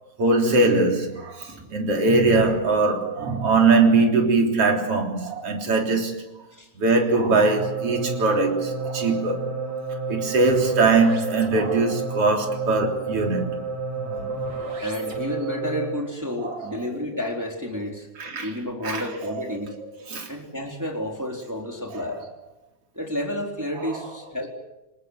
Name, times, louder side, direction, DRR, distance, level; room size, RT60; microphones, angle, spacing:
voice 1, 0.2-6.2 6.8-9.4 10.1-13.6 14.1-14.3 14.7-14.8 16.4-16.7 18.2-18.5 18.8-19.0 20.1-20.3 22.0-22.1, right 3 dB, 50° right, 4.4 m, -21 dB
voice 2, 1.5-1.8 6.5-6.7 14.8-18.1 18.4-19.8 20.3-22.2 22.9-24.5, left 1 dB, 5° right, 3.5 m, -31 dB
sound 1, 7.3-16.1, right 4 dB, 65° right, 5.6 m, -31 dB
27.0 x 20.0 x 8.1 m
omnidirectional pair, 3.5 m